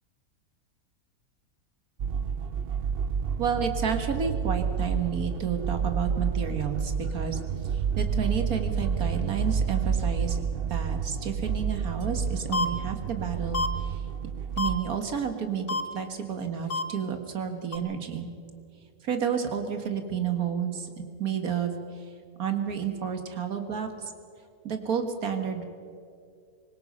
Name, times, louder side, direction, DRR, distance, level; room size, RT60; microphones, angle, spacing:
sound 1, 2.0-14.8, right 6 dB, 55° right, 0.7 m, -29 dB
voice 1, 3.4-7.4 7.7-10.4 10.7-14.0 14.6-15.7 15.9-18.3 19.0-21.7 22.4-23.9 24.6-25.6, right 7 dB, 80° right, 6 dB, 2.1 m, -30 dB
sound 2, 12.5-12.7 13.5-13.7 14.6-14.7 15.7-15.8 16.7-16.8 17.7-17.8, left 3 dB, 40° left, 1.1 m, -26 dB
24.0 x 20.5 x 5.5 m, 2.3 s
omnidirectional pair, 1.5 m